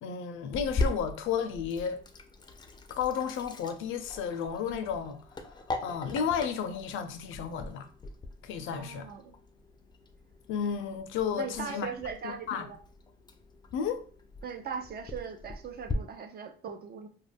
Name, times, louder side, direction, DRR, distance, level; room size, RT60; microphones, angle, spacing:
voice 1, 0.0-2.0 3.0-5.2 5.8-7.9 8.4-9.1 10.5-11.9 12.2-12.7 13.7-14.0, left 7 dB, 85° left, 0.4 m, -32 dB
Sink (filling or washing), 0.5-15.9, left 2 dB, 20° left, 0.4 m, -40 dB
voice 2, 8.7-9.4 11.4-12.8 14.4-17.1, right 6 dB, 50° right, 0.5 m, -39 dB
2.3 x 2.1 x 3.3 m
cardioid pair, 90°, 20 cm